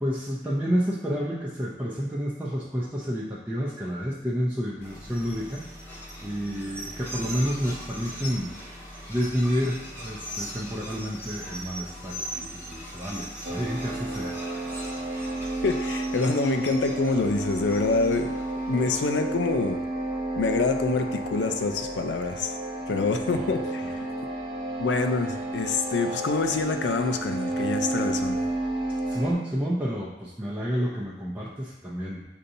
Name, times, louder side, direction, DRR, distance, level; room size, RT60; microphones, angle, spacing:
voice 1, 0.0-5.6 6.2-8.5 9.1-14.4 23.2-23.6 29.1-32.2, equal, 10° right, -7 dB, 0.5 m, -30 dB
sound 1, 4.8-19.0, equal, 10° left, 1.1 m, -40 dB
sound 2, 13.4-29.3, right 2 dB, 55° right, 0.7 m, -31 dB
voice 2, 15.6-18.3 18.7-19.8 20.4-22.6 22.9-24.1 24.8-28.4, left 3 dB, 75° left, 6 dB, 0.4 m, -26 dB
6.6 x 2.7 x 2.6 m, 1.1 s
head